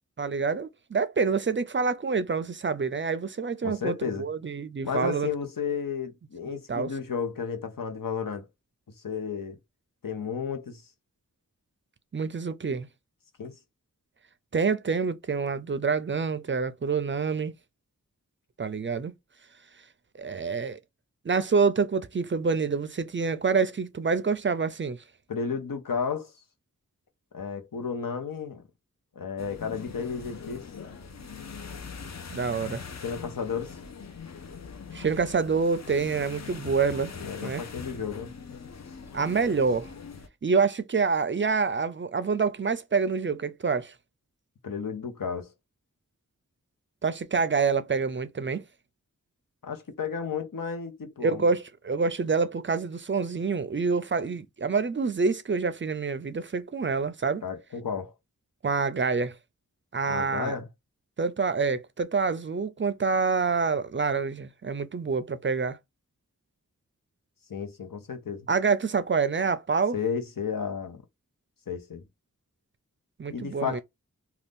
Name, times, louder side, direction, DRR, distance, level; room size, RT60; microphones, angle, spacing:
voice 1, 0.2-5.3 6.5-6.9 12.1-12.9 14.5-17.5 18.6-19.1 20.2-20.8 21.2-25.0 32.3-32.8 34.9-37.1 37.4-37.6 39.1-39.9 40.4-43.9 47.0-48.6 51.2-57.4 58.6-59.3 59.9-60.5 61.2-65.8 68.5-70.0 73.2-73.8, right 5 dB, 40° right, 0.4 m, -27 dB
voice 2, 3.6-4.3 4.8-8.5 9.0-9.6 10.0-10.8 13.4-13.5 25.3-26.3 27.3-28.6 29.1-30.6 33.0-33.7 37.2-38.3 44.6-45.5 49.6-51.5 57.4-58.1 60.1-60.7 67.5-68.5 69.9-71.0 71.7-72.0 73.3-73.8, left 6 dB, 85° left, 0.8 m, -32 dB
sound 1, 29.4-40.3, left 5 dB, 55° left, 0.6 m, -42 dB
2.5 x 2.3 x 3.4 m
wide cardioid pair, 70°, 32 cm